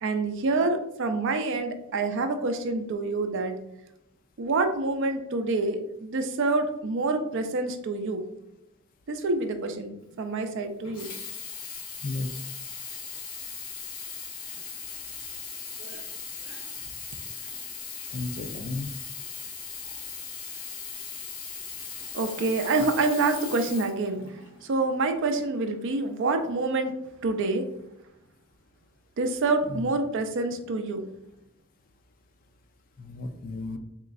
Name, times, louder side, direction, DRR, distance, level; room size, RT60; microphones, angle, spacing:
voice 1, 0.0-3.6 4.4-8.2 9.1-11.1 15.8-16.0 16.4-16.6 22.1-26.9 27.2-27.6 29.2-31.0, right 3 dB, 60° right, 7 dB, 0.4 m, -27 dB
Sink (filling or washing), 10.8-24.6 25.4-25.5, left 5 dB, 75° left, 0.8 m, -39 dB
voice 2, 12.0-12.4 18.1-18.9 29.7-29.9 33.0-33.8, left 2 dB, 40° left, 7 dB, 0.3 m, -33 dB
3.7 x 3.0 x 2.5 m, 0.82 s
head